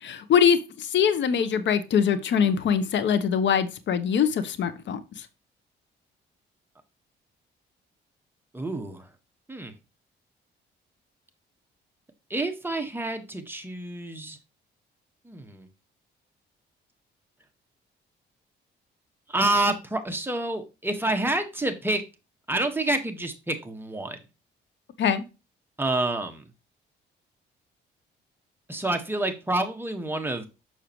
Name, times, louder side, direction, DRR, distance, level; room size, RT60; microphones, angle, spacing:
voice 1, 0.0-5.3 25.0-25.2, left 7 dB, 65° left, 1.0 m, -23 dB
voice 2, 8.5-9.1 9.5-9.7 12.3-14.4 15.2-15.7 19.3-22.0 22.5-24.2 25.8-26.4 28.7-30.5, right 2 dB, 10° right, 1.5 m, -28 dB
6.6 x 6.5 x 3.1 m
cardioid pair, 90°, 20 cm